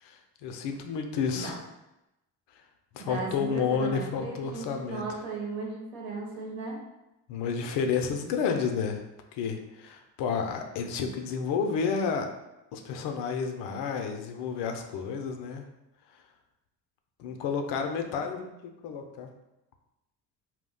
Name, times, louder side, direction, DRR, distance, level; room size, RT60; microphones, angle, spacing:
voice 1, 0.0-1.6 2.9-5.0 7.3-9.0 9.4-12.3 12.7-15.6 17.2-19.3, left 6 dB, 65° left, 4 dB, 0.5 m, -31 dB
voice 2, 3.0-6.8, right 3 dB, 70° right, -2 dB, 1.0 m, -36 dB
2.3 x 2.1 x 3.7 m, 0.93 s
hypercardioid pair, 55°, 46 cm